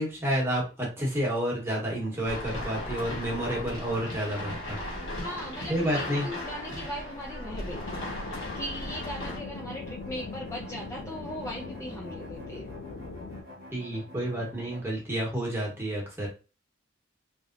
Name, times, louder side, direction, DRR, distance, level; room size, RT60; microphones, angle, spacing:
voice 1, 0.0-4.8 5.7-6.3 13.7-16.3, equal, 10° right, -3 dB, 1.1 m, -30 dB
sound 1, 1.9-14.8, left 1 dB, 50° right, 0.9 m, -49 dB
sound 2, 2.2-9.4, left 1 dB, 65° left, 1.3 m, -37 dB
voice 2, 5.2-12.7, equal, 15° left, -3 dB, 0.4 m, -39 dB
sound 3, 7.5-13.4, left 3 dB, 80° left, 0.4 m, -41 dB
3.0 x 2.7 x 2.5 m, 0.33 s
head